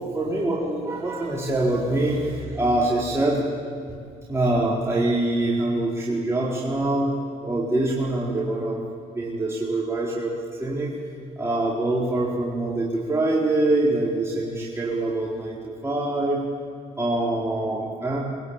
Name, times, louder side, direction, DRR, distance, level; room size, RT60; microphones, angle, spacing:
voice 1, 0.1-3.4 4.3-7.1 7.4-8.8 9.1-10.3 10.6-10.9 11.4-16.4 17.0-18.2, right 2 dB, 15° right, -5 dB, 4.7 m, -24 dB
22.5 x 21.5 x 9.1 m, 2.2 s
supercardioid pair, 65°, 17 cm